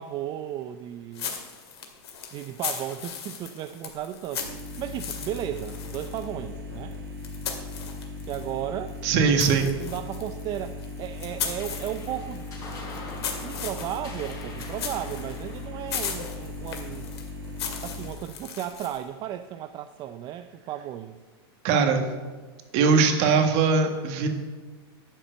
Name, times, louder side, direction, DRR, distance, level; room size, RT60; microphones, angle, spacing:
voice 1, 0.0-1.3 2.3-7.0 8.3-8.9 9.5-12.5 13.4-17.1 17.8-21.2, right 11 dB, 30° right, 9 dB, 0.5 m, -35 dB
sound 1, 1.1-8.5 8.9-19.1, left 7 dB, 85° left, 2.2 m, -38 dB
sound 2, 4.4-18.1, left 2 dB, 75° right, 2.1 m, -38 dB
voice 2, 9.0-9.7 21.6-22.0 22.7-24.3, right 5 dB, 45° right, 5 dB, 1.7 m, -21 dB
sound 3, 11.6-18.4, left 2 dB, 25° left, 3.8 m, -45 dB
11.5 x 6.0 x 8.0 m, 1.4 s
supercardioid pair, 140°, 13 cm